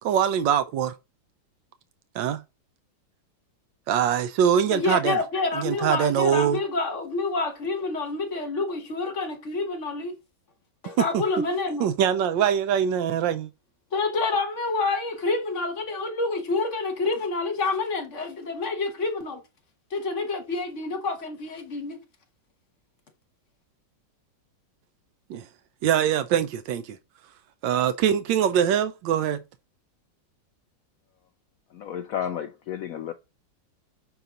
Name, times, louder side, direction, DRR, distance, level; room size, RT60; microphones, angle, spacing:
voice 1, 0.0-0.9 2.1-2.4 3.9-5.2 5.6-6.6 11.1-11.2 11.8-13.5 25.3-25.4 25.8-27.0 27.6-29.4, right 9 dB, 85° right, 1.3 m, -23 dB
voice 2, 4.7-10.2 10.8-11.9 13.9-19.4 19.9-22.0, left 3 dB, 45° left, 1.4 m, -28 dB
voice 3, 31.7-33.1, left 9 dB, 75° left, 0.7 m, -32 dB
6.8 x 4.0 x 3.8 m
omnidirectional pair, 2.0 m